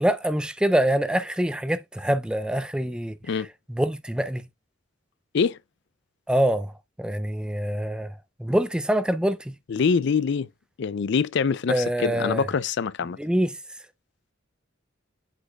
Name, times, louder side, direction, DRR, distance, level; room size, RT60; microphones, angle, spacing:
voice 1, 0.0-3.1 3.7-4.4 6.3-6.7 7.0-8.1 8.4-9.5 11.7-12.4 13.2-13.5, right 1 dB, 5° right, 0.4 m, -24 dB
voice 2, 9.7-10.5 10.8-13.2, left 5 dB, 55° left, 0.4 m, -24 dB
8.0 x 6.1 x 2.3 m
head